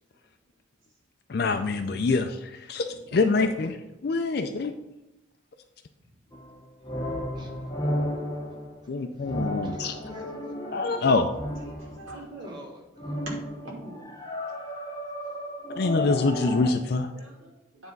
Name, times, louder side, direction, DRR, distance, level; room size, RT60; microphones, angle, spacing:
voice 1, 1.3-4.7 8.9-9.9 10.7-11.3 15.8-17.1, left 3 dB, 50° left, 5 dB, 0.4 m, -25 dB
sound 1, 6.3-12.2 13.0-16.7, left 1 dB, 20° left, 0.7 m, -33 dB
voice 2, 7.3-7.9 9.6-10.3 12.4-13.3, right 1 dB, 20° right, 0 dB, 1.2 m, -51 dB
voice 3, 11.6-12.6 13.3-14.1 16.0-16.7 17.1-17.9, right 1 dB, 85° right, -2 dB, 2.5 m, -42 dB
9.4 x 3.5 x 5.3 m, 0.94 s
head